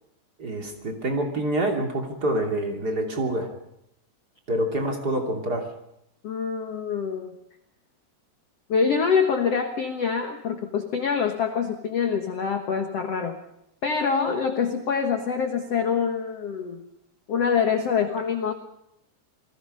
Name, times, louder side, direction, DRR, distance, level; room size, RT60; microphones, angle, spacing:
voice 1, 0.4-3.5 4.5-5.7, right 1 dB, 25° right, 2 dB, 2.5 m, -26 dB
voice 2, 6.2-7.3 8.7-13.4 13.8-16.8 17.3-18.5, left 6 dB, 70° left, 5 dB, 1.5 m, -25 dB
28.0 x 20.0 x 5.5 m, 0.79 s
omnidirectional pair, 5.1 m